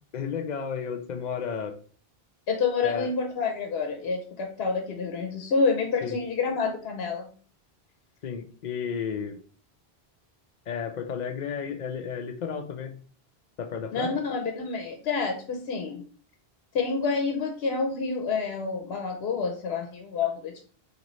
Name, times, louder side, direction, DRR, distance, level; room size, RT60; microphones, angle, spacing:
voice 1, 0.1-1.8 2.8-3.1 6.0-6.2 8.2-9.4 10.7-12.9 13.6-14.2, left 7 dB, 55° left, 7 dB, 0.6 m, -32 dB
voice 2, 2.5-7.3 13.9-16.0 16.7-20.6, left 4 dB, 80° left, 3 dB, 0.9 m, -28 dB
3.9 x 3.0 x 3.1 m, 0.43 s
omnidirectional pair, 1.0 m